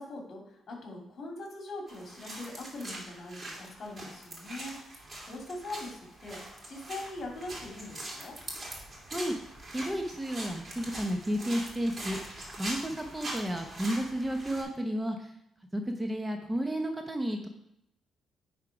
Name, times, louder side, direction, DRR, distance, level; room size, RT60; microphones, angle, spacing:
voice 1, 0.0-6.4 6.7-8.4, left 2 dB, 50° left, -1 dB, 2.6 m, -42 dB
sound 1, 1.9-14.6, right 1 dB, 30° right, 2.4 m, -43 dB
voice 2, 9.7-12.2 12.6-15.2 15.7-17.5, equal, 15° right, 4 dB, 0.8 m, -32 dB
10.0 x 3.7 x 4.8 m, 0.79 s
cardioid pair, 90°, 0 cm